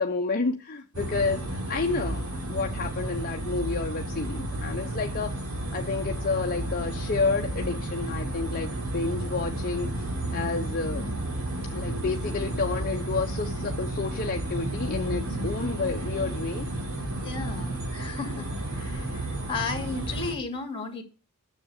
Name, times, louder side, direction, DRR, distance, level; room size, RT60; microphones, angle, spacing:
voice 1, 0.0-5.4 5.7-9.9 10.3-11.1 11.7-16.7, left 4 dB, 45° left, 0.8 m, -30 dB
sound 1, 0.9-20.3, right 1 dB, 75° right, 3.5 m, -32 dB
voice 2, 17.2-21.0, left 4 dB, 25° left, 2.4 m, -34 dB
10.0 x 7.4 x 8.2 m
head